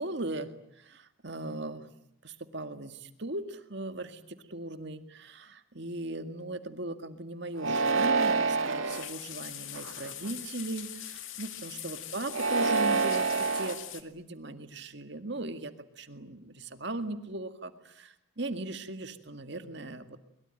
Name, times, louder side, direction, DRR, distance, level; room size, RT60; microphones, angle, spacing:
voice 1, 0.0-1.9 2.2-20.2, right 2 dB, 55° right, 8 dB, 2.0 m, -38 dB
sound 1, 7.6-9.0 9.7-10.3 12.2-13.8, right 4 dB, 80° right, 2.2 m, -27 dB
sound 2, 8.9-14.0, left 11 dB, 70° left, 2.3 m, -42 dB
23.0 x 22.5 x 9.1 m, 0.75 s
head